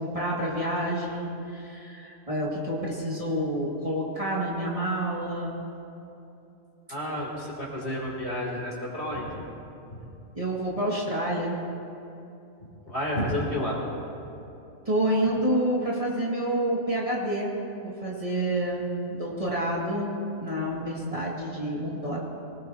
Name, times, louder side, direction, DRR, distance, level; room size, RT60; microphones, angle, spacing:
voice 1, 0.0-5.6 10.3-11.6 14.9-20.1 20.4-22.2, right 1 dB, 25° right, -5 dB, 2.3 m, -28 dB
voice 2, 6.9-9.4 9.9-10.0 12.9-13.8, left 1 dB, 50° left, -4 dB, 3.8 m, -30 dB
24.5 x 18.5 x 3.0 m, 2.8 s
omnidirectional pair, 1.5 m